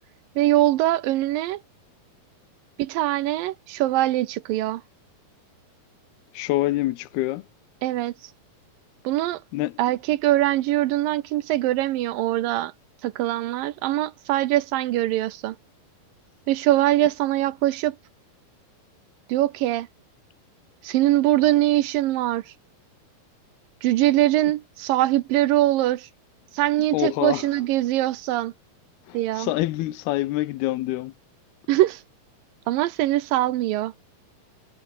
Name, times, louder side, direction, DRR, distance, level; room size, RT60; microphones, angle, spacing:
voice 1, 0.4-1.6 2.8-4.8 7.8-8.1 9.0-9.4 9.8-12.7 13.0-15.6 16.5-18.0 19.3-19.9 20.8-22.5 23.8-26.1 26.5-28.5 29.1-29.5 31.7-32.0 32.7-33.9, right 15 dB, 75° right, 2.4 m, -22 dB
voice 2, 6.3-7.5 9.5-9.8 26.9-27.5 29.1-31.1, left 17 dB, 85° left, 2.8 m, -26 dB
omnidirectional pair, 4.5 m